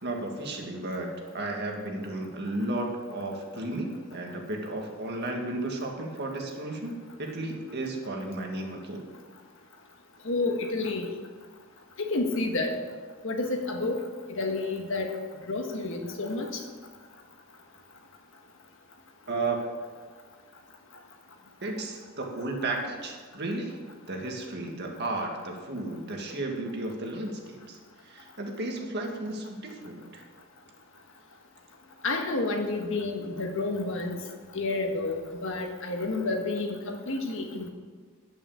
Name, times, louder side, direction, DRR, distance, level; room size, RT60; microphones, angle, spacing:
voice 1, 0.0-9.0 19.3-19.6 21.6-23.8 24.1-30.2, right 2 dB, 50° right, 1 dB, 1.9 m, -34 dB
voice 2, 10.2-11.1 12.0-12.8 13.2-14.0 14.3-15.1 15.5-16.6 32.0-34.2 34.5-37.7, left 2 dB, 60° left, 3 dB, 1.6 m, -30 dB
9.9 x 9.2 x 7.2 m, 1.5 s
head